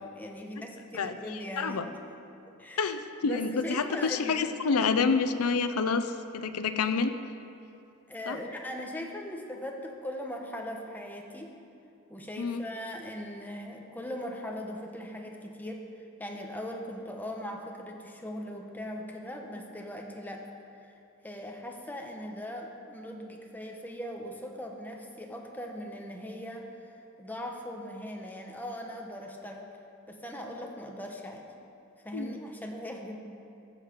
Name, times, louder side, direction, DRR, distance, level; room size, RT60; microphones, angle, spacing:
voice 1, 0.0-2.0 2.6-4.4 8.1-11.5 12.1-20.4 20.8-20.9 21.2-29.7 30.1-31.5 32.0-33.2, equal, 10° left, 1 dB, 1.0 m, -40 dB
voice 2, 0.9-1.9 2.8-7.1 8.3-8.4 12.4-12.6 32.1-32.4, left 5 dB, 85° left, 9 dB, 0.6 m, -28 dB
14.5 x 7.2 x 5.1 m, 2.7 s
head